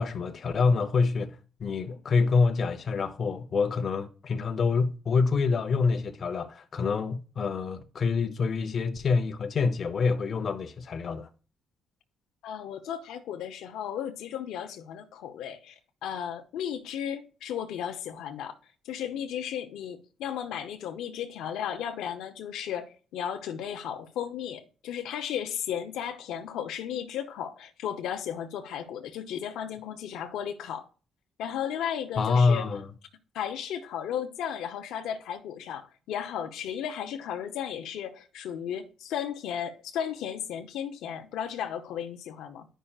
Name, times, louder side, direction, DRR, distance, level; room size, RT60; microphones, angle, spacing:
voice 1, 0.0-11.3 32.2-32.9, left 4 dB, 50° left, 0.7 m, -26 dB
voice 2, 12.4-18.6 18.8-30.9 31.4-32.7 33.3-42.7, left 9 dB, 85° left, 0.7 m, -35 dB
10.0 x 5.5 x 2.4 m
cardioid pair, 90°, 0 cm